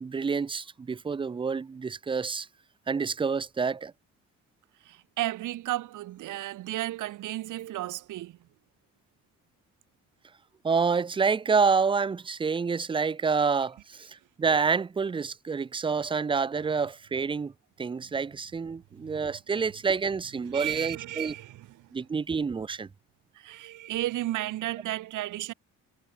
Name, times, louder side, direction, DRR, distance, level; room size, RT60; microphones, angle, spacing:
voice 1, 0.0-2.5 2.9-3.9 10.6-17.5 17.8-21.3 21.9-22.9, right 5 dB, 15° right, 0.4 m, -28 dB
voice 2, 4.8-8.4 20.4-21.9 23.3-25.5, right 15 dB, 85° right, 1.9 m, -33 dB
cardioid pair, 90°, 30 cm